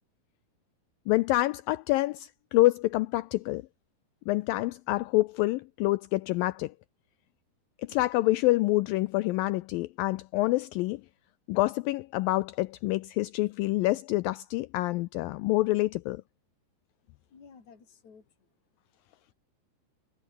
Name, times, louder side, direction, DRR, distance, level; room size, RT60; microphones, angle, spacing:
voice 1, 1.1-3.6 4.3-6.7 7.9-11.0 11.5-16.2, left 19 dB, 90° left, 2.0 m, -27 dB
voice 2, 17.3-18.5 19.2-19.3, left 5 dB, 45° left, 6.0 m, -54 dB
omnidirectional pair, 4.7 m